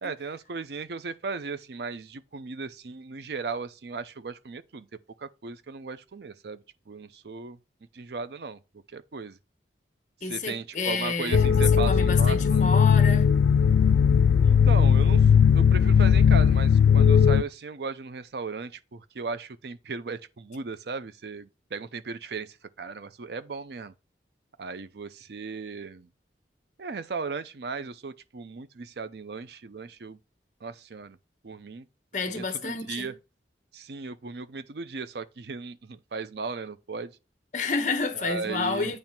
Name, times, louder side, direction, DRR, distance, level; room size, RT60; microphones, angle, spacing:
voice 1, 0.0-4.9 5.2-7.6 7.9-8.6 8.9-9.4 10.2-12.8 14.4-15.3 15.5-23.9 24.6-26.1 26.8-30.2 30.6-31.2 31.4-31.9 32.3-33.2 33.7-37.1 38.1-38.9, right 4 dB, 65° right, 0.5 m, -36 dB
voice 2, 10.2-13.3 32.1-33.1 37.5-39.0, left 4 dB, 45° left, 1.1 m, -30 dB
sound 1, 11.3-17.4, left 7 dB, 90° left, 0.3 m, -18 dB
8.8 x 3.2 x 5.9 m
head